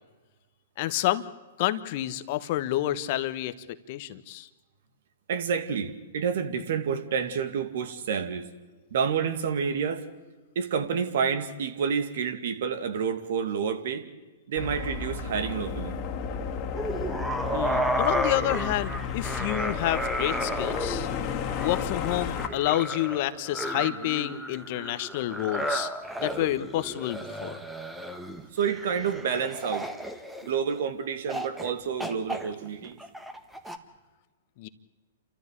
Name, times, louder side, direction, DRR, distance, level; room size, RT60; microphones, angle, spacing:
voice 1, 0.8-1.2 1.6-3.5 3.9-4.5 17.5-21.1 21.6-25.9 26.2-27.6 34.6-34.7, left 14 dB, 50° left, 1.3 m, -29 dB
voice 2, 5.3-8.5 8.9-10.1 10.6-14.1 14.5-16.0 28.5-29.9 30.4-33.0, right 6 dB, 65° right, 2.4 m, -29 dB
sound 1, 14.5-22.5, left 6 dB, 35° left, 2.2 m, -33 dB
sound 2, 16.7-30.8 31.3-31.7 32.0-33.8, equal, 5° right, 1.6 m, -33 dB
29.0 x 14.0 x 8.4 m
hypercardioid pair, 125°, 0 cm